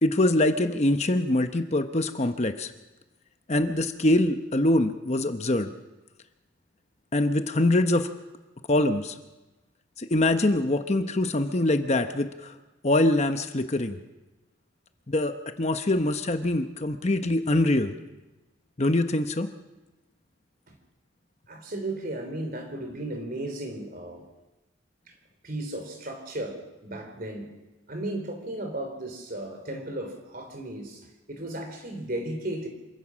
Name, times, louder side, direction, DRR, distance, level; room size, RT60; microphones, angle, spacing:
voice 1, 0.0-2.7 3.5-5.7 7.1-8.1 8.7-9.2 10.0-12.5 12.8-14.0 15.1-18.0 18.8-19.5, left 1 dB, 35° left, 8 dB, 0.9 m, -24 dB
voice 2, 21.5-24.3 25.4-27.5 27.9-32.7, right 1 dB, 45° right, 5 dB, 3.6 m, -35 dB
27.0 x 16.0 x 6.3 m, 1.1 s
head